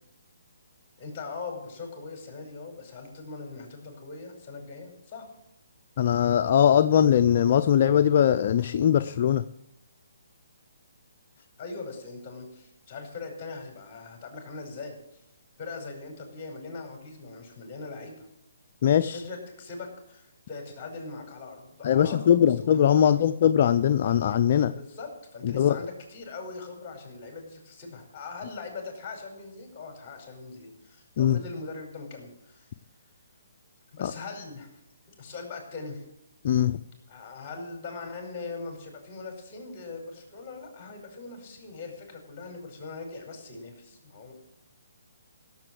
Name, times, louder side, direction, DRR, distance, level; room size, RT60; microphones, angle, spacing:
voice 1, 1.0-5.3 11.6-15.2 15.6-18.3 19.1-23.0 24.7-32.7 33.9-34.7 35.2-36.0 37.1-44.3, left 3 dB, 25° left, 2 dB, 5.2 m, -41 dB
voice 2, 6.0-9.4 18.8-19.2 21.8-24.7 25.4-25.8 31.2-31.4 34.0-34.1 36.4-36.8, left 9 dB, 40° left, 9 dB, 0.5 m, -21 dB
16.5 x 7.7 x 7.7 m, 0.81 s
hypercardioid pair, 160°, 0 cm